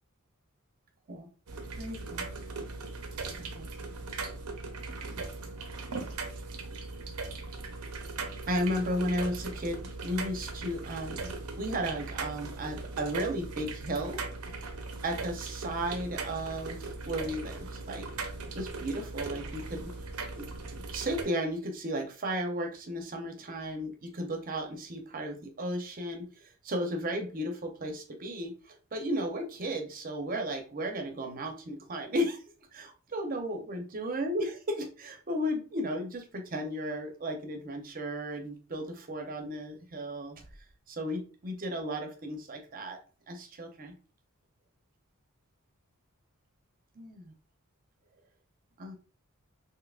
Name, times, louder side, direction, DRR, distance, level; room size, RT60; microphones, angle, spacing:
sound 1, 1.5-21.2, right 3 dB, 85° right, 0.6 m, -39 dB
voice 1, 1.8-2.3 3.4-3.7 5.1-5.3 8.5-14.2 15.0-18.1 18.5-19.9 20.3-20.5 20.7-32.4 32.7-40.4 40.9-43.0 43.3-43.9 47.0-47.3 48.8-48.9, equal, 40° right, 4 dB, 0.6 m, -34 dB
3.6 x 2.8 x 2.3 m, 0.37 s
head